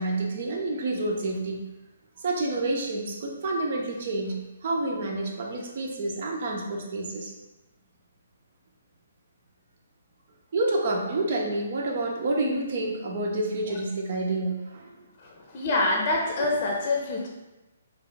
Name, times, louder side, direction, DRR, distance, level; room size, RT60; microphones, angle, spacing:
voice 1, 0.0-1.6 2.2-7.3 10.5-14.9 16.4-16.5, right 2 dB, 50° right, 1 dB, 0.7 m, -28 dB
voice 2, 15.2-17.3, left 2 dB, 40° left, -1 dB, 0.7 m, -26 dB
3.3 x 2.4 x 3.9 m, 1.0 s
figure-of-eight pair, 130°, 0 cm